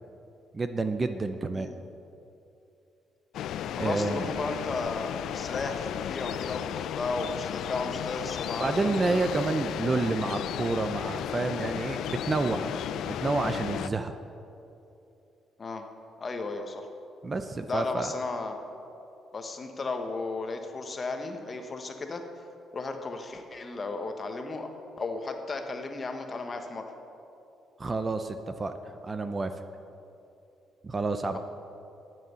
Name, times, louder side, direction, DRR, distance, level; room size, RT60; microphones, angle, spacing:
voice 1, 0.5-1.7 3.8-4.4 8.6-14.1 17.2-18.1 27.8-29.5 30.8-31.4, right 3 dB, 25° right, 9 dB, 0.5 m, -29 dB
sound 1, 3.3-13.9, left 10 dB, 75° left, 0.3 m, -34 dB
voice 2, 3.8-8.9 15.6-15.8 16.2-16.9 17.7-18.6 19.3-22.2 22.7-24.7 25.0-26.8, left 3 dB, 30° left, 5 dB, 1.1 m, -34 dB
11.0 x 7.6 x 6.8 m, 2.7 s
cardioid pair, 110°, 0 cm